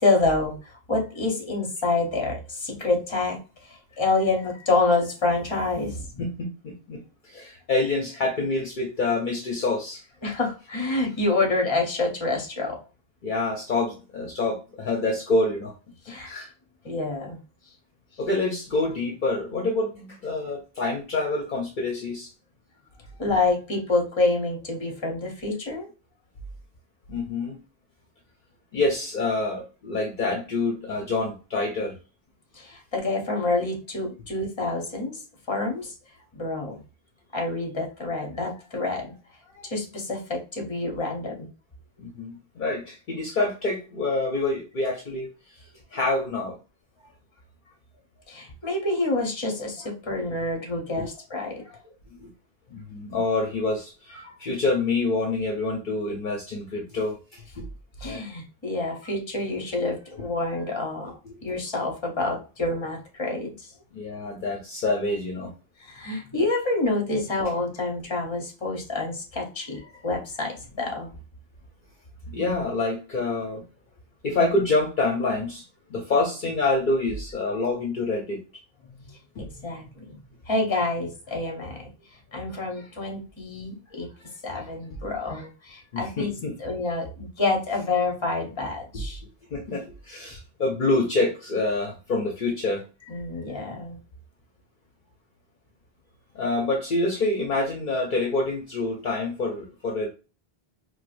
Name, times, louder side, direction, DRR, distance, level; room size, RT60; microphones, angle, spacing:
voice 1, 0.0-3.4 3.6-6.2 10.2-12.8 16.1-16.3 16.8-17.4 23.2-25.9 32.5-35.2 35.5-35.9 36.3-36.8 37.3-39.1 39.5-41.5 48.3-51.8 58.0-61.1 61.4-63.7 65.8-71.1 79.1-80.2 80.5-81.9 82.3-84.1 84.4-86.3 86.6-89.2 93.1-94.0, left 2 dB, 30° left, 1 dB, 0.9 m, -27 dB
voice 2, 6.2-10.0 13.2-15.7 16.2-16.5 18.2-22.3 27.1-27.6 28.7-31.9 42.0-45.3 45.9-46.6 51.0-51.1 52.1-52.3 52.7-57.6 58.0-58.2 58.9-59.0 61.3-61.4 63.9-65.5 72.3-73.6 74.2-75.6 75.9-78.4 79.4-79.5 85.9-86.5 89.5-92.8 96.3-100.1, left 2 dB, 55° left, 0 dB, 0.7 m, -27 dB
4.5 x 2.1 x 2.4 m, 0.32 s
omnidirectional pair, 1.0 m